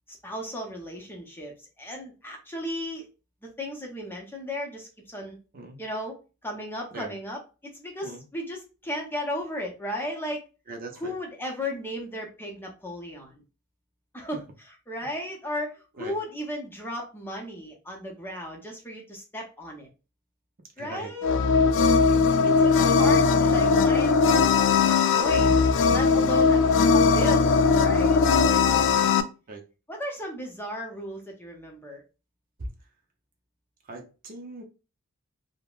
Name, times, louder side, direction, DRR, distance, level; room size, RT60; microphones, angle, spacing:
voice 1, 0.2-3.1 3.4-5.4 5.8-10.4 10.9-13.4 14.1-19.9 20.8-21.3 22.1-24.3 24.9-25.6 25.9-26.7 26.9-29.1 29.9-32.0, equal, 10° left, 0 dB, 0.7 m, -35 dB
voice 2, 10.7-11.1 16.0-16.1 20.8-21.1 28.7-28.9 29.5-29.6 32.6-32.7 33.9-34.6, right 2 dB, 40° right, 3 dB, 0.6 m, -39 dB
sound 1, 21.2-29.2, left 5 dB, 55° left, 0.3 m, -20 dB
3.6 x 2.1 x 2.3 m, 0.31 s
head